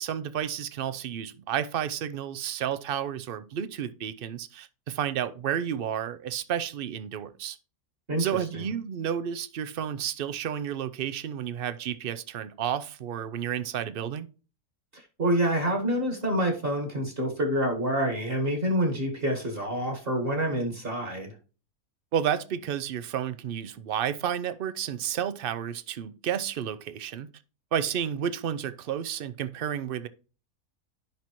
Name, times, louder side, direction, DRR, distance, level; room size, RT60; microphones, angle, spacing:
voice 1, 0.0-7.6 8.2-14.3 22.1-27.3 27.7-30.1, right 9 dB, 60° right, 0.6 m, -31 dB
voice 2, 8.1-8.7 14.9-21.3, right 1 dB, 40° right, 1.9 m, -27 dB
10.5 x 5.8 x 3.0 m
omnidirectional pair, 1.6 m